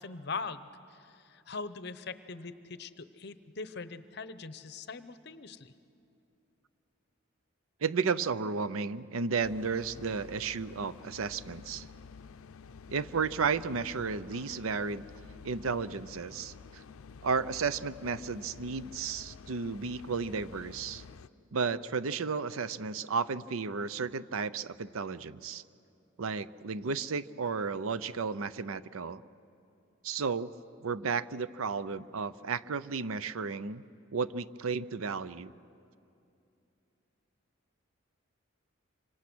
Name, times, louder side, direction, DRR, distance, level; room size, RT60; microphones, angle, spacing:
voice 1, 0.0-5.7, left 4 dB, 50° left, 13 dB, 0.8 m, -41 dB
voice 2, 7.8-11.9 12.9-15.1 15.4-16.8 17.2-21.0 21.5-25.6 26.2-29.2 30.0-30.5 30.8-33.8 34.1-35.5, right 5 dB, 85° right, 16 dB, 0.6 m, -33 dB
sound 1, 9.4-21.3, left 5 dB, 80° left, 0.5 m, -50 dB
26.5 x 25.5 x 6.2 m, 2.7 s
head